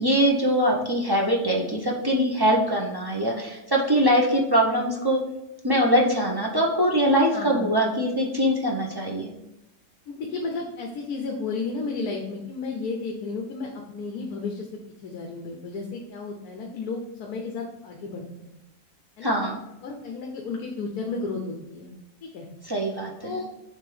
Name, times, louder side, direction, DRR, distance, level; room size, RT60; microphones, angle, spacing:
voice 1, 0.0-5.2 5.6-9.3 19.2-19.6 22.6-23.4, equal, 25° right, -2 dB, 0.6 m, -22 dB
voice 2, 7.3-7.7 10.1-14.7 15.0-18.5 19.2-19.4 19.8-21.9 22.2-22.5 23.2-23.4, left 4 dB, 70° left, 1 dB, 1.3 m, -33 dB
6.6 x 3.4 x 5.0 m, 0.92 s
omnidirectional pair, 1.7 m